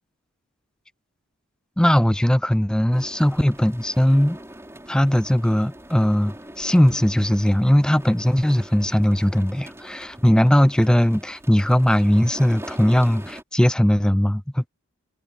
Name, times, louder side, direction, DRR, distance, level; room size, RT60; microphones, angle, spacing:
voice 1, 1.8-4.4 4.9-14.7, equal, 5° left, 0.3 m, -19 dB
sound 1, 2.9-13.4, right 1 dB, 10° right, 5.7 m, -42 dB
head